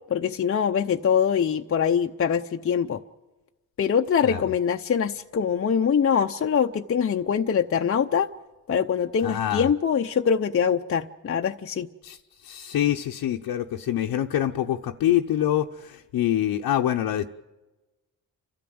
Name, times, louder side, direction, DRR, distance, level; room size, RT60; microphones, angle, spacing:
voice 1, 0.1-3.0 3.8-8.3 8.7-11.9, left 7 dB, 40° left, 4 dB, 0.7 m, -23 dB
voice 2, 9.2-9.7 12.0-17.3, left 11 dB, 75° left, 1 dB, 0.9 m, -25 dB
29.5 x 13.0 x 7.8 m, 1.1 s
cardioid pair, 95°, 37 cm